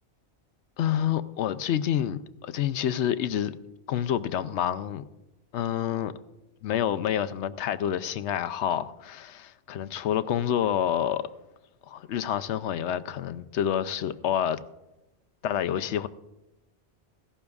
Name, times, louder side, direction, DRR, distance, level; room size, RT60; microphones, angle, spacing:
voice 1, 0.8-3.6 3.9-5.1 5.5-6.1 6.6-11.2 11.9-14.6 15.4-16.1, left 10 dB, 85° left, 0.9 m, -28 dB
17.0 x 15.5 x 2.4 m
omnidirectional pair, 1.2 m